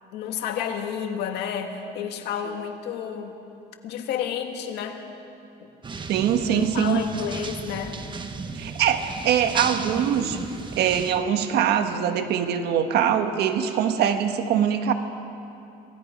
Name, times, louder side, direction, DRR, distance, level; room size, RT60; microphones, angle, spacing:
voice 1, 0.1-3.3 3.8-5.0 5.6-5.7 6.4-8.1, left 8 dB, 80° left, 4 dB, 1.9 m, -31 dB
sound 1, 5.8-11.1, right 4 dB, 30° right, 1.3 m, -35 dB
voice 2, 6.1-7.0 8.6-10.4 10.7-14.9, right 9 dB, 75° right, 7 dB, 1.4 m, -23 dB
27.0 x 18.0 x 5.3 m, 2.7 s
cardioid pair, 110°, 17 cm